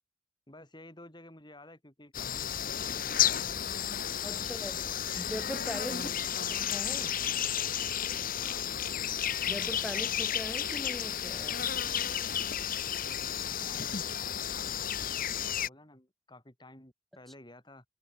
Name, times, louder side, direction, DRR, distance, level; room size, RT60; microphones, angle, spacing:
voice 1, 0.5-3.7 4.3-5.1 5.9-6.3 8.3-8.9 13.1-17.8, left 1 dB, 20° left, 4.7 m, -54 dB
sound 1, 2.1-15.7, left 9 dB, 45° left, 1.3 m, -32 dB
voice 2, 4.2-4.8 5.2-6.1 6.6-7.2 9.5-11.6, equal, ahead, 2.5 m, -40 dB
head